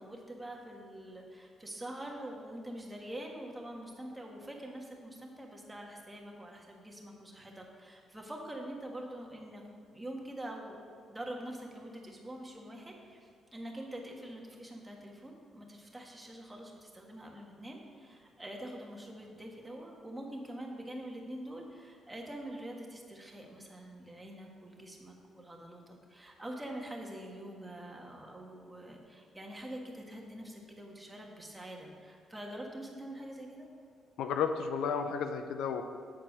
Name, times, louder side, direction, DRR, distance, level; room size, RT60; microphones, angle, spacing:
voice 1, 0.0-9.6 9.9-10.7 11.1-33.7, right 1 dB, 10° right, 0 dB, 1.4 m, -45 dB
voice 2, 34.2-35.8, left 6 dB, 80° left, 7 dB, 0.5 m, -32 dB
8.6 x 4.5 x 6.3 m, 2.3 s
cardioid pair, 90°, 0 cm